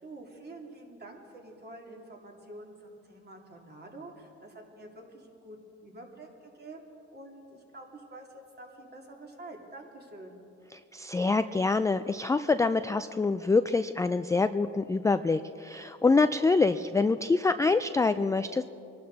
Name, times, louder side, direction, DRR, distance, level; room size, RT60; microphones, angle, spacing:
voice 1, 0.0-5.6 5.8-10.4, right 2 dB, 35° right, 0 dB, 2.8 m, -47 dB
voice 2, 10.9-18.6, left 3 dB, 10° left, 11 dB, 0.3 m, -25 dB
24.0 x 12.0 x 4.0 m, 2.7 s
cardioid pair, 90°, 30 cm